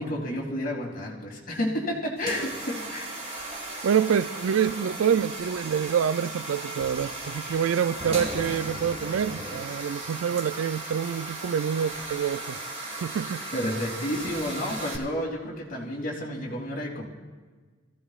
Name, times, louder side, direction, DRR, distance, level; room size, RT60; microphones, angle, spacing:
voice 1, 0.0-3.2 13.5-17.1, equal, 45° left, 2.9 m, -31 dB
sound 1, 2.2-15.0, right 2 dB, 30° right, 1.8 m, -36 dB
voice 2, 3.8-12.6 13.0-13.4, right 8 dB, 80° right, 0.4 m, -26 dB
23.0 x 15.5 x 2.4 m
head